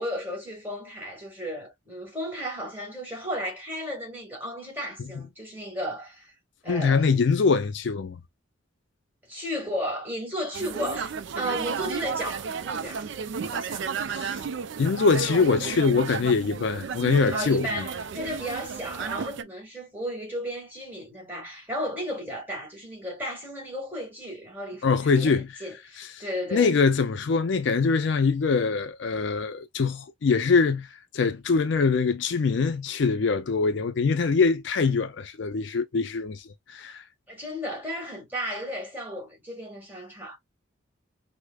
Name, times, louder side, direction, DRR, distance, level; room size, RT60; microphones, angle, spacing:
voice 1, 0.0-6.3 6.6-7.1 9.3-13.1 13.5-13.9 17.3-26.7 37.3-40.4, equal, 10° right, 1.7 m, -34 dB
voice 2, 6.7-8.2 14.1-14.4 14.8-17.8 24.8-25.5 26.5-30.9 31.1-37.0, left 4 dB, 60° left, 0.4 m, -23 dB
sound 1, 10.5-19.4, right 6 dB, 65° right, 0.4 m, -33 dB
4.8 x 2.1 x 2.2 m
head